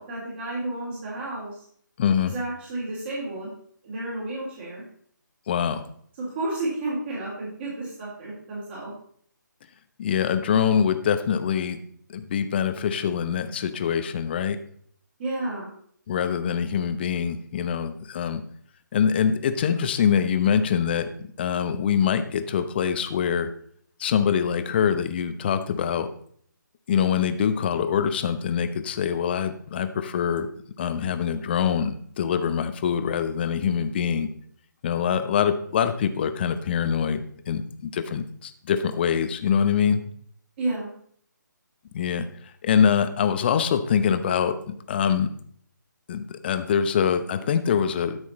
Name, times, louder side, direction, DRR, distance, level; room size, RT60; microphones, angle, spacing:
voice 1, 0.0-1.6 2.2-3.5 3.8-4.8 6.2-8.9 15.2-15.7 40.6-40.9, right 2 dB, 35° right, -7 dB, 3.5 m, -31 dB
voice 2, 2.0-2.3 5.5-5.8 10.0-11.8 12.1-14.6 16.1-18.4 18.9-21.1 21.4-23.5 24.0-26.1 26.9-30.5 30.8-34.3 34.8-40.0 41.9-42.3 42.6-45.3 46.1-48.2, left 7 dB, 30° left, 10 dB, 0.8 m, -24 dB
12.5 x 6.3 x 4.2 m, 0.62 s
figure-of-eight pair, 150°, 11 cm